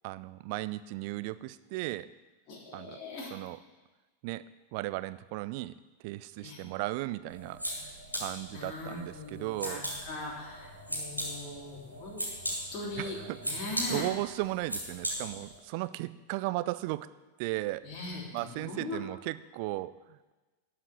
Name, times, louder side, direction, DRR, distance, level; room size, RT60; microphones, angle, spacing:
voice 1, 0.0-2.1 2.7-3.0 3.3-3.6 4.2-5.7 6.0-9.8 13.0-13.5 13.9-17.1 17.4-17.9 18.3-20.3, right 18 dB, 45° right, 15 dB, 0.4 m, -36 dB
voice 2, 2.5-3.3 6.4-6.6 8.5-12.2 12.7-13.2 13.4-14.1 17.8-19.0, left 2 dB, 35° left, -5 dB, 3.4 m, -40 dB
sound 1, 7.3-15.6, equal, 90° left, 2.2 m, -38 dB
11.5 x 5.8 x 8.3 m, 1.2 s
figure-of-eight pair, 90°, 0 cm